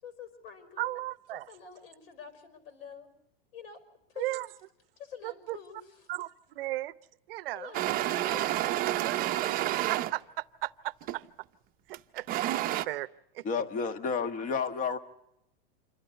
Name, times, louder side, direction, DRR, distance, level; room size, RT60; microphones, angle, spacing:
voice 1, 0.0-0.9 1.3-3.1 3.5-3.8 4.1-4.4 5.0-6.1 7.5-9.5, left 6 dB, 75° left, 10 dB, 5.4 m, -47 dB
voice 2, 0.8-1.5 4.2-4.5 5.2-5.6 6.1-6.9 7.3-7.7 8.9-11.2 11.9-12.3 12.8-13.1 13.3-13.4, right 17 dB, 70° right, 18 dB, 0.8 m, -36 dB
sound 1, 7.7-10.1 11.0-11.3 11.9-12.9, right 14 dB, 30° right, 0.8 m, -29 dB
voice 3, 13.4-15.0, left 5 dB, 25° left, 10 dB, 1.4 m, -31 dB
27.5 x 12.5 x 9.8 m, 0.82 s
supercardioid pair, 145°, 30 cm